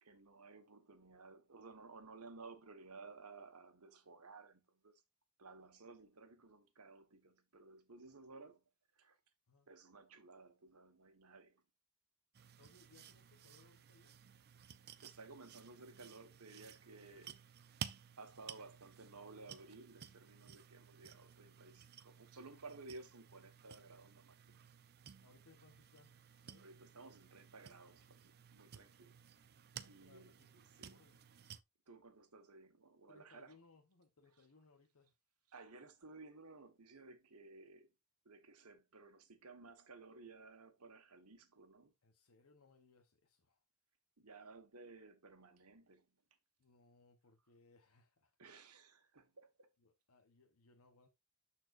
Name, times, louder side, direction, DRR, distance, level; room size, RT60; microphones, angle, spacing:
voice 1, 0.0-5.0 5.4-8.6 8.9-9.2 9.7-11.6 15.0-17.4 18.2-24.6 26.6-29.1 29.9-31.0 31.9-33.5 35.5-37.9 38.2-41.9 44.2-46.1 48.4-49.7, right 3 dB, 85° right, 1.4 m, -57 dB
sound 1, 12.3-31.6, right 8 dB, 45° right, 0.5 m, -55 dB
voice 2, 12.6-14.2 25.2-26.8 29.7-30.5 30.9-31.3 33.1-35.1 42.0-43.6 46.6-48.4 49.8-51.1, left 3 dB, 70° left, 1.0 m, -68 dB
12.5 x 4.5 x 2.5 m
head